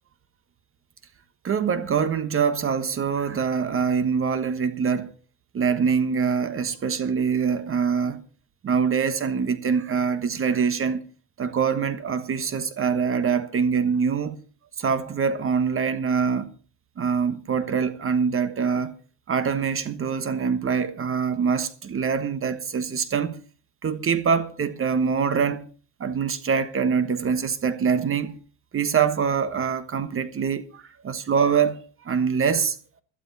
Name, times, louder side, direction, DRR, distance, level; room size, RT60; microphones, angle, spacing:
voice 1, 1.4-5.1 5.5-8.2 8.6-11.0 11.4-14.4 14.8-16.5 17.0-18.9 19.3-23.4 23.8-25.7 26.0-28.4 28.7-32.8, right 6 dB, 30° right, 1.4 m, -24 dB
17.0 x 12.5 x 4.1 m
supercardioid pair, 105°, 45 cm